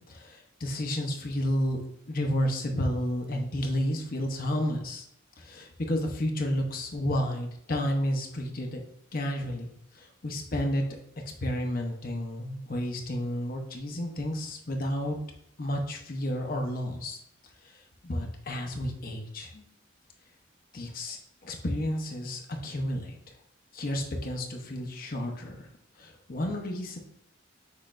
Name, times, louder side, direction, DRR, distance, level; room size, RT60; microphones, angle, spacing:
voice 1, 0.1-1.8 2.1-5.0 5.4-8.8 9.1-9.7 10.2-10.8 11.4-15.2 15.6-17.2 18.0-19.6 20.7-23.1 23.7-25.6 26.0-27.0, equal, 45° left, 2 dB, 0.8 m, -31 dB
6.5 x 3.1 x 2.5 m, 0.73 s
head